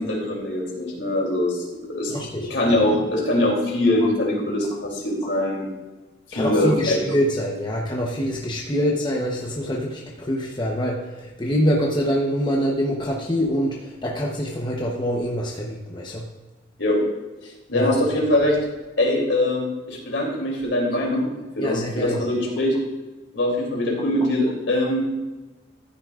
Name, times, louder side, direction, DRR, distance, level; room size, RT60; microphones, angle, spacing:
voice 1, 0.0-5.7 6.3-7.0 8.8-8.9 16.8-17.0 17.7-18.6 19.0-21.3 21.6-22.7 23.3-25.1, left 1 dB, 70° left, -1 dB, 3.1 m, -22 dB
voice 2, 2.1-2.5 6.3-16.3 17.7-17.9 21.6-22.2, equal, 25° left, -2 dB, 1.0 m, -25 dB
14.0 x 9.7 x 2.5 m, 1.1 s
head